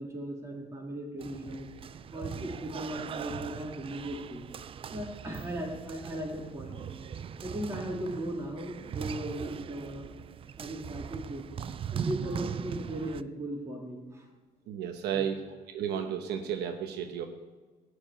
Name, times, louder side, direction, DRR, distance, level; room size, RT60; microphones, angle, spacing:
voice 1, 0.0-1.7 2.1-4.4 4.9-6.8 7.4-10.1 10.6-11.5 11.9-14.3 15.1-15.3, right 1 dB, 15° right, -2 dB, 3.1 m, -37 dB
sound 1, 1.2-13.2, right 8 dB, 35° right, 0.3 m, -40 dB
voice 2, 14.7-17.3, right 8 dB, 80° right, 5 dB, 1.0 m, -33 dB
12.5 x 4.9 x 8.8 m, 1.3 s
cardioid pair, 110°, 17 cm